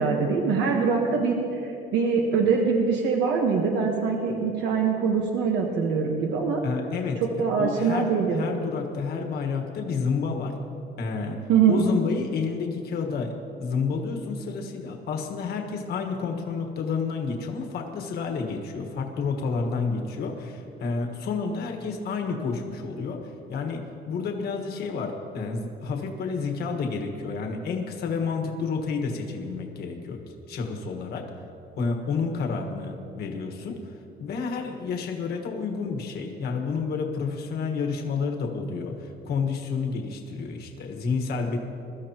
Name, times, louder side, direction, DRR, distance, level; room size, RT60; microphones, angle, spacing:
voice 1, 0.0-6.6 7.4-8.4 11.5-11.8, right 5 dB, 75° right, 0 dB, 1.3 m, -23 dB
voice 2, 6.6-7.2 7.6-10.5 11.0-11.4 11.7-13.3 13.6-30.2 30.5-31.2 31.8-41.6, left 5 dB, 60° left, 3 dB, 1.5 m, -30 dB
22.0 x 13.5 x 3.0 m, 2.8 s
cardioid pair, 170°, 18 cm